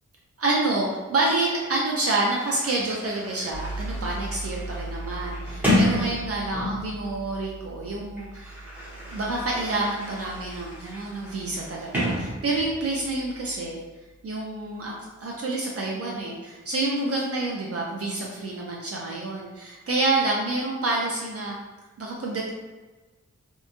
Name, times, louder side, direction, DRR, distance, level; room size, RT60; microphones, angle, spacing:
voice 1, 0.4-8.6 9.1-13.8 14.2-14.9 15.2-21.6 22.0-22.5, right 2 dB, 55° right, -3 dB, 0.4 m, -28 dB
Sliding door, 1.6-1.7 2.0-7.0 7.9-12.9, left 1 dB, 5° right, 0.8 m, -31 dB
sound 1, 3.5-14.2, right 2 dB, 30° left, 0.8 m, -40 dB
2.9 x 2.2 x 2.4 m, 1.2 s
wide cardioid pair, 140°, 29 cm